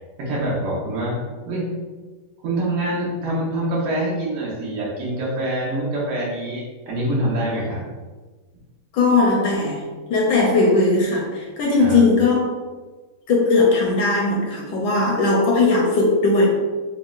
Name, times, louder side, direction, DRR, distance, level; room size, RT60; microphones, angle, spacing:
voice 1, 0.2-1.2 1.4-1.7 2.4-7.8 11.8-12.0, right 1 dB, 90° right, -6 dB, 2.0 m, -25 dB
voice 2, 8.9-9.8 10.1-12.5 13.3-16.5, left 3 dB, 75° left, -1 dB, 1.1 m, -18 dB
5.6 x 2.1 x 2.4 m, 1.3 s
omnidirectional pair, 2.3 m